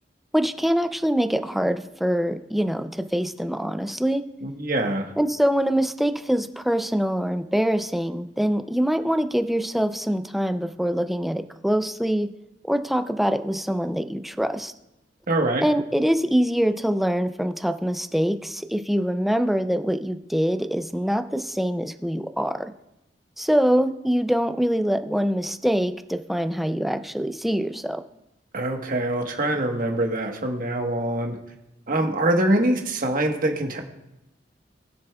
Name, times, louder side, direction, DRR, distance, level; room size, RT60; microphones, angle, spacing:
voice 1, 0.3-4.2 5.2-12.3 12.6-14.7 15.6-22.7 23.4-28.0, equal, ahead, 9 dB, 0.4 m, -24 dB
voice 2, 4.4-5.1 15.3-15.7 28.5-31.4 31.9-33.8, right 1 dB, 50° right, 3 dB, 1.3 m, -24 dB
20.0 x 7.0 x 2.3 m, 0.92 s
head